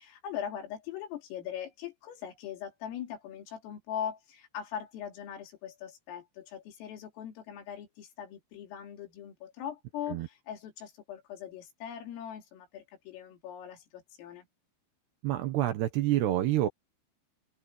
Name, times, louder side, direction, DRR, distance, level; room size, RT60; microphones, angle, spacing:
voice 1, 0.0-14.5, left 9 dB, 80° left, 5.8 m, -41 dB
voice 2, 15.2-16.7, right 13 dB, 70° right, 2.8 m, -27 dB
omnidirectional pair, 5.8 m